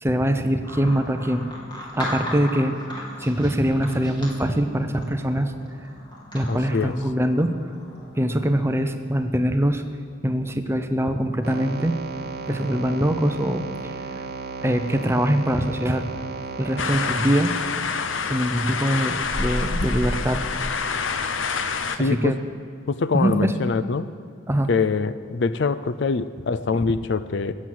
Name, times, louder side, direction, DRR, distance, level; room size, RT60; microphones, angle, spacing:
voice 1, 0.0-1.5 1.9-2.7 3.2-5.5 6.3-7.5 8.2-9.8 10.2-11.9 12.5-13.9 14.6-16.0 16.6-17.6 18.2-20.4 22.0-22.4 23.1-23.5 24.5-24.7, equal, 10° right, 8 dB, 0.6 m, -23 dB
sound 1, 0.6-8.5, left 1 dB, 25° left, 2.7 m, -37 dB
voice 2, 6.5-7.0 21.9-22.3 22.9-24.1 24.7-27.5, left 4 dB, 60° left, 14 dB, 0.5 m, -24 dB
sound 2, 11.4-17.2, right 4 dB, 50° right, 0.7 m, -34 dB
sound 3, 16.8-22.0, left 4 dB, 75° left, 0.8 m, -26 dB
16.5 x 7.5 x 7.7 m, 2.3 s
head